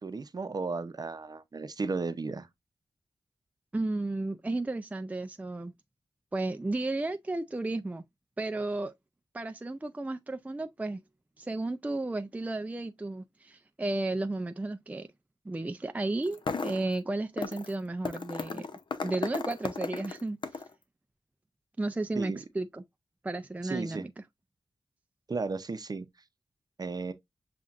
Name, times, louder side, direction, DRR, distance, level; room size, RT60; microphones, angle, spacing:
voice 1, 0.0-2.5 22.2-22.4 23.6-24.1 25.3-26.1 26.8-27.1, right 4 dB, 50° right, 0.7 m, -34 dB
voice 2, 3.7-5.7 6.3-8.0 8.4-8.9 9.3-11.0 11.4-15.1 15.5-18.7 19.0-20.6 21.8-22.8 23.2-24.1, right 2 dB, 15° right, 0.4 m, -33 dB
sound 1, 16.2-16.9 17.4-17.7 18.0-20.7, left 4 dB, 60° left, 0.7 m, -35 dB
7.2 x 2.5 x 2.5 m
wide cardioid pair, 75°, 9 cm